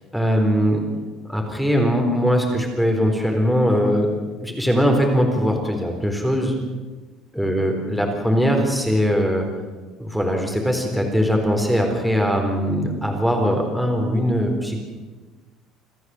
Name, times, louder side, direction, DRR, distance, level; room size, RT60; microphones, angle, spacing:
voice 1, 0.1-0.8 1.3-4.1 4.4-6.5 7.3-9.4 10.0-14.8, equal, ahead, 2 dB, 4.0 m, -20 dB
27.0 x 14.5 x 7.8 m, 1.3 s
cardioid pair, 155°, 0 cm